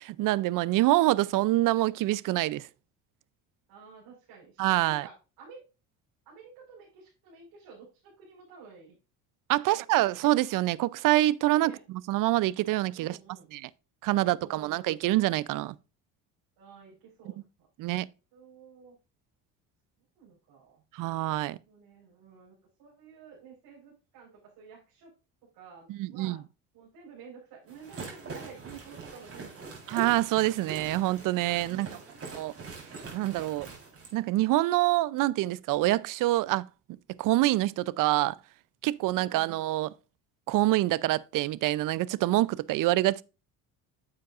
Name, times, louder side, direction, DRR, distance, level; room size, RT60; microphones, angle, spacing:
voice 1, 0.0-2.7 4.6-5.1 9.5-13.2 13.5-13.7 14.0-15.7 17.8-18.1 20.9-21.6 25.9-26.4 29.9-31.9 32.3-32.5 33.1-33.7 34.1-36.7 37.2-38.4 38.8-39.9 40.5-43.2, right 16 dB, 60° right, 0.5 m, -26 dB
voice 2, 3.7-5.6 6.2-9.0 9.6-10.2 11.6-11.8 12.9-13.5 16.6-17.4 18.3-19.0 20.2-20.8 21.7-22.5 22.8-25.1 25.5-26.4 26.7-29.7 31.6-32.1, right 6 dB, 80° right, 4.6 m, -51 dB
sound 1, 27.7-34.1, right 4 dB, 35° right, 3.9 m, -43 dB
9.5 x 7.6 x 2.4 m
cardioid pair, 105°, 37 cm